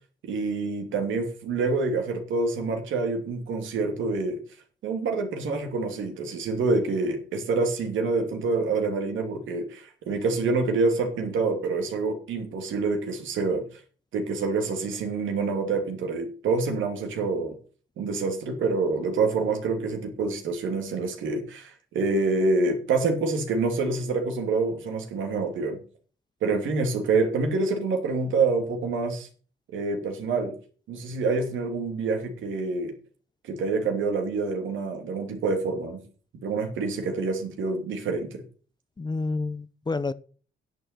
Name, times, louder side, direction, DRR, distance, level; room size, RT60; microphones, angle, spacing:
voice 1, 0.2-4.4 4.8-13.6 14.1-17.5 18.0-25.8 26.4-29.3 29.7-30.5 30.9-32.9 33.5-36.0 36.3-38.4, right 3 dB, 75° right, 2.7 m, -27 dB
voice 2, 39.0-40.1, left 3 dB, 20° left, 0.7 m, -29 dB
10.5 x 6.9 x 6.8 m
cardioid pair, 90°, 20 cm